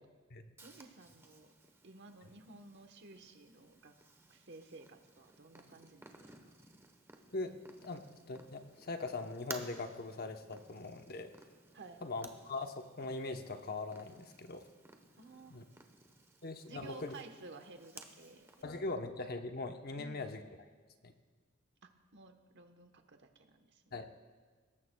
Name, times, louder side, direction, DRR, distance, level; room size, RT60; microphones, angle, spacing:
Purr, 0.6-18.6, right 2 dB, 10° right, 1.0 m, -56 dB
voice 1, 0.6-1.5 1.8-3.9 4.3-6.5 11.7-12.0 15.2-15.7 16.7-18.5 20.0-20.3 21.8-24.0, right 2 dB, 55° right, 6 dB, 1.1 m, -54 dB
voice 2, 7.3-11.3 12.0-14.6 15.5-15.6 16.4-17.1 18.6-20.4 21.0-21.1 23.9-24.1, left 3 dB, 50° left, 6 dB, 0.9 m, -41 dB
21.0 x 17.5 x 2.3 m, 1.4 s
head